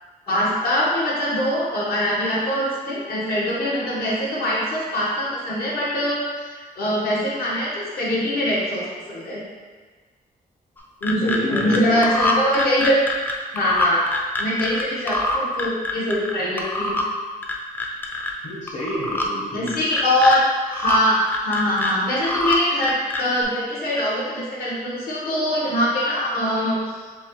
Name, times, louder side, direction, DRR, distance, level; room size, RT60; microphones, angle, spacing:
voice 1, 0.3-9.4 11.0-13.0 13.5-14.1 14.4-17.0 19.5-20.4 20.7-26.8, equal, 75° left, -7 dB, 1.3 m, -23 dB
sound 1, 10.8-11.8 12.0-14.8 15.1-16.3 16.6-17.1 17.4-18.3 18.7-19.3 19.7-20.4 20.7-21.0 21.3-22.6 22.8-23.4, left 2 dB, 10° left, 0.4 m, -25 dB
voice 2, 11.2-12.0 12.4-12.5 18.4-19.7, equal, 55° left, -8 dB, 1.1 m, -29 dB
7.0 x 2.3 x 3.1 m, 1.4 s
wide cardioid pair, 170°, 16 cm